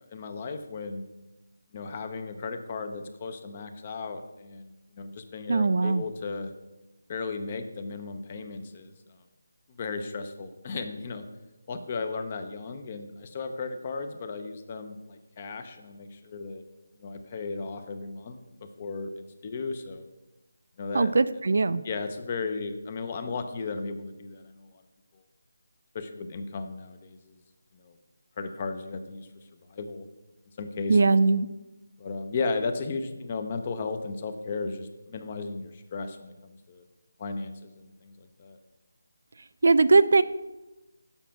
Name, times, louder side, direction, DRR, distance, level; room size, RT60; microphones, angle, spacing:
voice 1, 0.1-1.1 1.7-6.5 7.1-9.2 9.8-11.2 11.7-16.6 17.0-18.4 18.8-20.0 20.8-21.1 21.8-24.8 25.9-27.4 27.7-28.0 28.4-29.3 29.7-30.1 30.6-31.2 32.0-36.8 37.2-38.6, left 4 dB, 30° left, 8 dB, 0.6 m, -35 dB
voice 2, 5.5-6.0 20.9-21.8 30.9-31.5 39.6-40.2, right 3 dB, 60° right, 14 dB, 0.4 m, -20 dB
7.1 x 5.1 x 5.7 m, 1.0 s
figure-of-eight pair, 170°, 0 cm